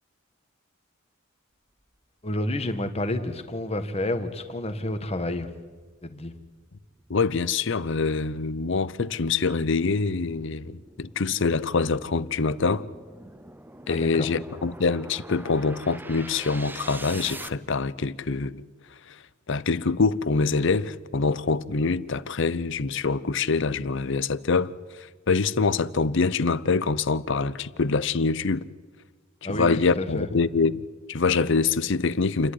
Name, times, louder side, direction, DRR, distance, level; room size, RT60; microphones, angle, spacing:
voice 1, 2.2-5.5 6.0-6.3 13.9-14.3 29.4-30.3, left 1 dB, 30° left, 1.5 m, -30 dB
sound 1, 3.5-17.5, right 2 dB, 10° right, 0.6 m, -45 dB
voice 2, 7.1-12.9 13.9-18.6 19.1-19.2 19.5-24.7 25.0-28.7 29.5-32.5, left 4 dB, 60° left, 0.7 m, -25 dB
29.0 x 11.5 x 9.9 m
head